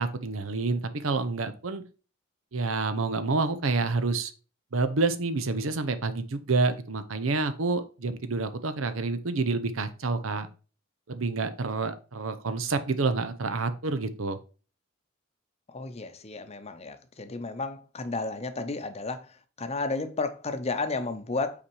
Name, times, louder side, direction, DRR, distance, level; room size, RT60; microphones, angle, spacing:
voice 1, 0.0-1.8 2.5-4.3 4.7-10.5 11.1-14.4, right 3 dB, 75° right, 0.8 m, -28 dB
voice 2, 15.7-21.6, left 3 dB, 30° left, 0.8 m, -33 dB
5.9 x 4.2 x 4.6 m
head